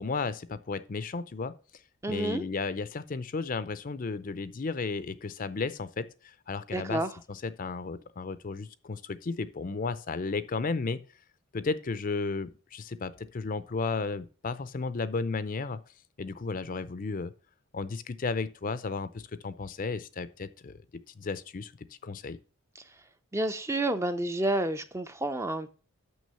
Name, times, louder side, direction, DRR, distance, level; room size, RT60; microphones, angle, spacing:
voice 1, 0.0-1.5 2.1-7.0 7.3-11.0 11.5-15.8 16.2-17.3 17.7-20.8 21.2-21.7 22.0-22.4, left 4 dB, 40° left, 0.5 m, -33 dB
voice 2, 2.0-2.5 6.7-7.1 23.3-25.7, right 1 dB, 15° right, 0.5 m, -29 dB
6.3 x 6.0 x 6.8 m
head